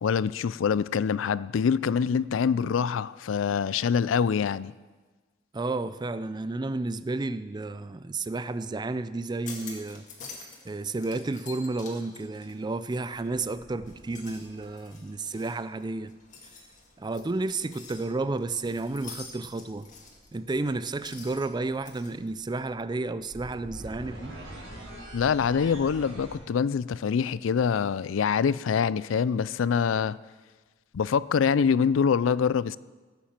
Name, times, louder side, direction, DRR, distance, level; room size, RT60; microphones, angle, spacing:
voice 1, 0.0-4.7 25.1-30.2 30.9-32.8, left 6 dB, 80° left, 0.4 m, -25 dB
voice 2, 5.5-10.0 10.6-16.1 17.0-19.9 20.3-24.4, right 3 dB, 20° right, 0.4 m, -32 dB
sound 1, 9.2-10.7 11.0-13.4 13.8-22.1, left 4 dB, 40° left, 2.2 m, -47 dB
sound 2, 13.2-15.3 17.1-26.4, right 1 dB, 75° right, 4.6 m, -46 dB
16.0 x 7.2 x 7.4 m
head